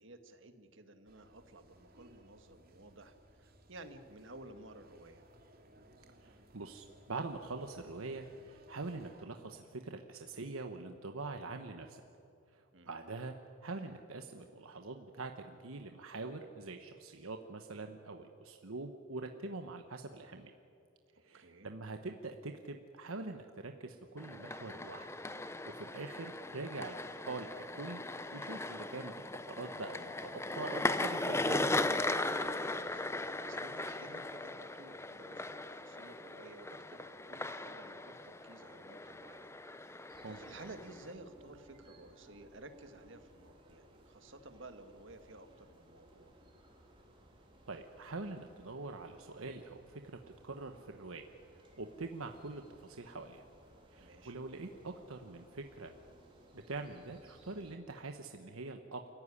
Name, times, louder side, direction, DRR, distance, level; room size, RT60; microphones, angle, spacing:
voice 1, 0.0-5.2 12.7-13.0 21.2-21.7 32.4-46.3 54.0-54.3, right 2 dB, 60° right, 7 dB, 1.8 m, -54 dB
sound 1, 1.1-9.2, right 1 dB, 45° right, 2.6 m, -62 dB
voice 2, 6.2-12.0 12.5-20.5 21.2-25.1 25.6-27.0 27.3-28.0 28.3-29.1 29.5-31.8 40.2-40.4 47.7-50.0 50.4-53.5 53.9-55.9 56.5-59.1, right 3 dB, 80° right, 5 dB, 1.2 m, -44 dB
sound 2, 24.2-41.1, left 2 dB, 15° left, 0.7 m, -38 dB
sound 3, 40.1-57.7, right 1 dB, 25° right, 3.5 m, -61 dB
29.0 x 15.0 x 10.0 m, 2.6 s
head